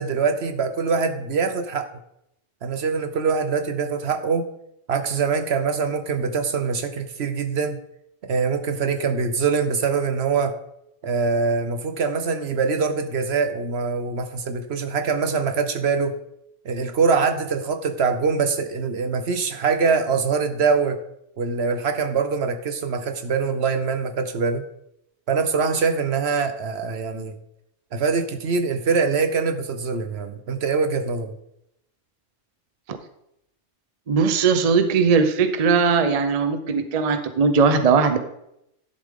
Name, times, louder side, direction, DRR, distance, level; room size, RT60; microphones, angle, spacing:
voice 1, 0.0-1.9 2.6-4.5 4.9-7.8 8.2-10.5 11.0-16.1 16.6-21.0 21.4-24.6 25.3-27.3 27.9-31.3, right 5 dB, 60° right, 8 dB, 1.0 m, -23 dB
voice 2, 34.1-38.2, right 5 dB, 35° right, 9 dB, 0.7 m, -19 dB
11.0 x 7.2 x 3.7 m, 0.80 s
omnidirectional pair, 1.3 m